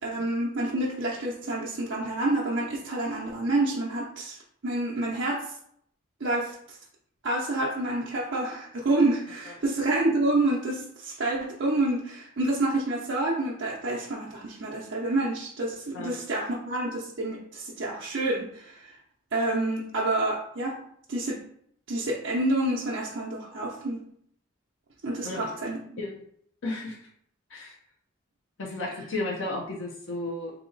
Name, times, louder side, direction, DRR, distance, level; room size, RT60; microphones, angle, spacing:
voice 1, 0.0-5.5 6.2-6.8 7.2-18.9 19.3-20.8 21.1-21.4 21.9-24.0 25.0-26.0, right 2 dB, 60° right, -5 dB, 0.6 m, -28 dB
voice 2, 26.6-27.0 27.5-27.8 28.6-30.5, left 2 dB, 65° left, -3 dB, 0.7 m, -33 dB
2.9 x 2.8 x 3.9 m, 0.66 s
head